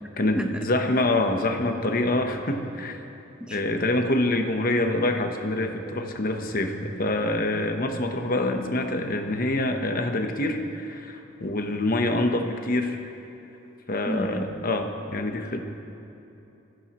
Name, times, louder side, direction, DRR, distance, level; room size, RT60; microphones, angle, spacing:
voice 1, 0.2-3.0 3.5-13.0 13.9-15.6, left 2 dB, 45° left, 5 dB, 1.0 m, -26 dB
voice 2, 14.1-14.5, right 1 dB, 5° right, 4 dB, 0.8 m, -29 dB
21.5 x 15.5 x 3.1 m, 2.9 s
head